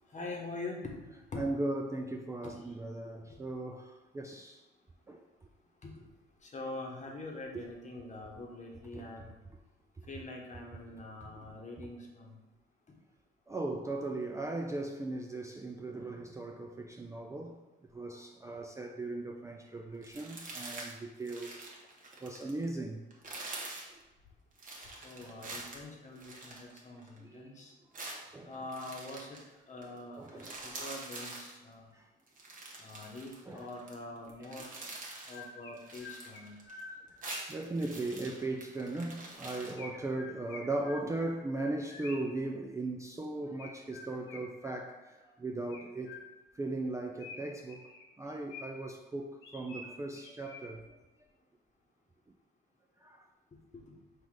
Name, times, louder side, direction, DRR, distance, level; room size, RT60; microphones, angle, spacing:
voice 1, 0.1-1.1 1.3-1.5 2.4-2.6 3.0-3.4 5.8-5.9 6.4-9.3 10.1-12.4 25.0-27.7 28.5-29.4 29.7-31.9 32.8-34.7 35.3-36.6 53.7-53.8, left 2 dB, 35° left, 1.0 m, -44 dB
voice 2, 1.4-4.6 5.1-5.2 8.9-9.1 10.0-10.1 11.8-11.9 13.5-17.6 17.9-21.6 22.2-23.0 27.2-27.5 28.3-28.5 30.2-30.5 31.9-32.1 33.5-33.7 34.4-34.5 37.5-46.2 46.6-47.9 48.2-51.0 53.0-53.3, right 2 dB, 15° right, 0.3 m, -38 dB
sound 1, 20.0-20.9 21.2-22.6 23.1-23.9 24.6-27.2 27.9-29.4 29.8-30.0 30.2-31.5 32.3-33.9 34.3-35.4 35.8-36.8 37.1-39.7, right 2 dB, 40° right, 1.1 m, -45 dB
Chirp tweet, 35.1-37.7 39.8-42.4 43.6-45.2 45.7-46.6 47.2-49.0 49.4-50.9, left 3 dB, 90° left, 0.7 m, -49 dB
4.0 x 2.5 x 4.7 m
cardioid pair, 90°, 20 cm